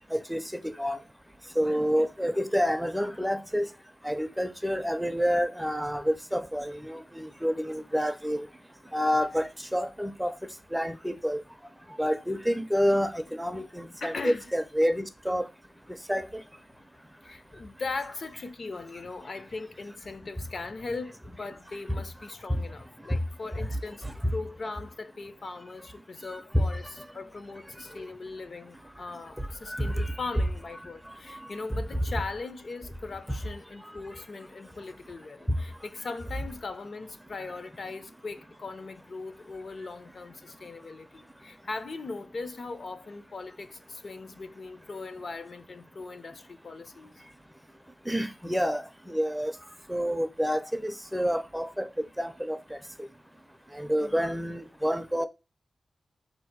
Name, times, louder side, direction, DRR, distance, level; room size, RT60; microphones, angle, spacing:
voice 1, 0.1-1.0 1.6-3.7 4.0-8.5 8.9-10.3 10.7-11.4 12.0-15.5 16.1-16.3 22.5-22.6 23.6-23.7 24.0-24.1 26.5-26.7 29.4-30.2 31.7-31.8 33.8-33.9 48.1-49.5 49.9-52.8 53.7-55.3, equal, 5° right, 0.4 m, -28 dB
voice 2, 1.8-2.1 13.5-13.6 14.0-14.5 17.2-47.2 54.0-54.3, left 3 dB, 60° left, 0.6 m, -39 dB
4.3 x 2.7 x 4.4 m
wide cardioid pair, 105°, 0 cm